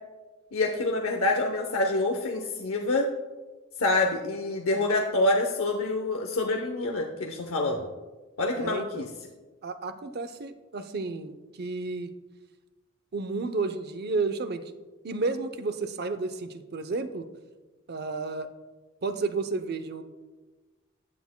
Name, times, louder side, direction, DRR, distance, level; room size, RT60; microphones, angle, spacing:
voice 1, 0.5-3.1 3.8-7.9 8.4-9.1, left 2 dB, 80° left, 2 dB, 0.8 m, -26 dB
voice 2, 8.5-9.1 9.6-12.1 13.1-14.6 15.0-17.3 17.9-18.5 19.0-20.0, right 3 dB, 50° right, 10 dB, 0.6 m, -32 dB
15.0 x 9.5 x 2.2 m, 1.2 s
head